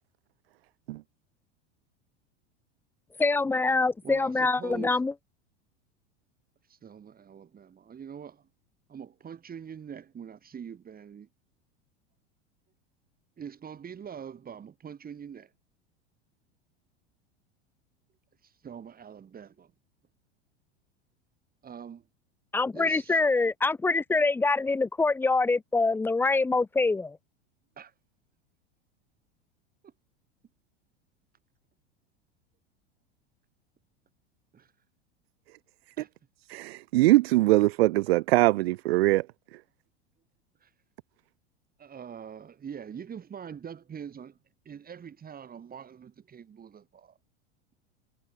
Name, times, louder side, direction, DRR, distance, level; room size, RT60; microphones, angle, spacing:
voice 1, 3.2-5.1 22.5-27.2, left 3 dB, 5° left, 0.4 m, -25 dB
voice 2, 4.0-5.0 6.6-8.4 8.9-11.3 13.4-15.5 18.4-19.7 21.6-22.0 22.7-23.2 27.8-27.9 34.5-34.7 36.0-36.1 40.6-40.7 41.8-44.4 44.7-47.2, right 7 dB, 25° right, 7.2 m, -44 dB
voice 3, 36.5-39.2, right 18 dB, 65° right, 0.5 m, -22 dB
hypercardioid pair, 90°, 33 cm